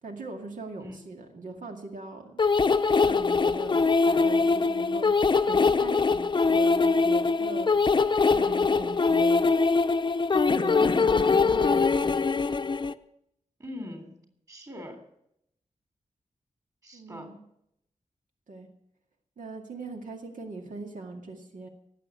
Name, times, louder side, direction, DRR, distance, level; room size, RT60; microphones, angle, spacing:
voice 1, 0.0-2.4 3.0-3.8 4.1-7.7 8.3-9.4 10.3-12.4 16.9-17.4 18.5-18.7 19.4-21.7, right 3 dB, 85° right, 3 dB, 2.1 m, -40 dB
sound 1, 2.4-12.9, left 4 dB, 35° left, 0.6 m, -23 dB
voice 2, 13.6-14.2 14.5-15.0 16.8-17.3, left 1 dB, 25° right, 6 dB, 3.4 m, -42 dB
18.0 x 7.8 x 8.4 m, 0.76 s
wide cardioid pair, 110°, 13 cm